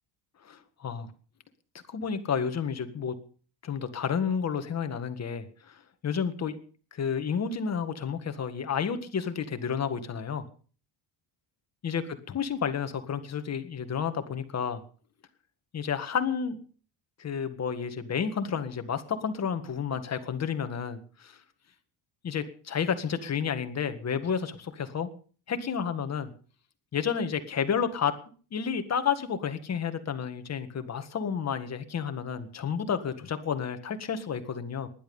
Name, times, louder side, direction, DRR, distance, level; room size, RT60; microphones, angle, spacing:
voice 1, 0.4-1.1 1.9-3.2 3.6-6.6 6.9-10.4 11.8-14.8 15.7-16.6 17.2-21.4 22.2-25.1 25.5-26.3 26.9-28.2 28.5-34.9, left 7 dB, 35° left, 9 dB, 1.8 m, -31 dB
20.0 x 12.0 x 5.5 m, 0.42 s
cardioid pair, 170°, 48 cm